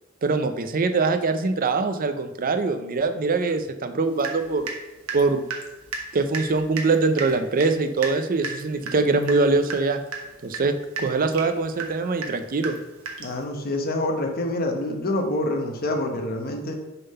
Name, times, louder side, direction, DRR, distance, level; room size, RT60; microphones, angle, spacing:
voice 1, 0.2-4.7 5.1-5.4 6.1-10.0 10.4-12.8, right 3 dB, 40° right, 9 dB, 0.5 m, -23 dB
Water tap faucet / Drip, 4.2-4.8 5.1-13.4, right 4 dB, 80° right, 1.2 m, -34 dB
voice 2, 13.2-16.7, left 1 dB, 45° left, 3 dB, 1.0 m, -26 dB
6.8 x 3.8 x 5.5 m, 1.0 s
head